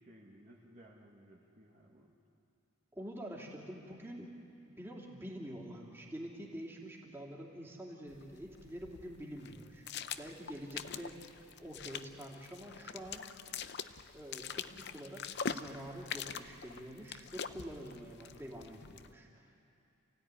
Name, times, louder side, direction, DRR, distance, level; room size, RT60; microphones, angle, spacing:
voice 1, 0.0-2.1, right 1 dB, 35° right, -3 dB, 1.9 m, -58 dB
voice 2, 2.9-4.3 4.7-13.3 14.1-19.4, equal, 10° right, -3 dB, 3.0 m, -47 dB
sound 1, 8.1-19.1, left 6 dB, 50° left, 0.7 m, -44 dB
28.0 x 16.5 x 9.9 m, 2.6 s
head